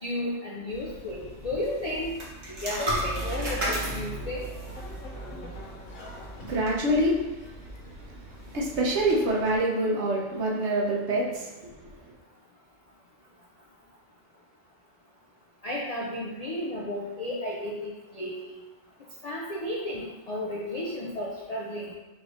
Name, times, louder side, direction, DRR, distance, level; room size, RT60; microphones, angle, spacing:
voice 1, 0.0-2.2 2.5-4.5 15.6-18.6 19.2-21.9, left 1 dB, 55° left, -4 dB, 0.4 m, -33 dB
sound 1, 0.7-9.6, right 1 dB, 40° right, 0.9 m, -37 dB
sound 2, 2.9-8.3, right 1 dB, 85° left, 1.2 m, -39 dB
voice 2, 6.4-7.2 8.5-11.5 12.1-12.2, right 1 dB, 65° right, -3 dB, 1.1 m, -25 dB
5.2 x 3.1 x 2.5 m, 1.1 s
omnidirectional pair, 1.3 m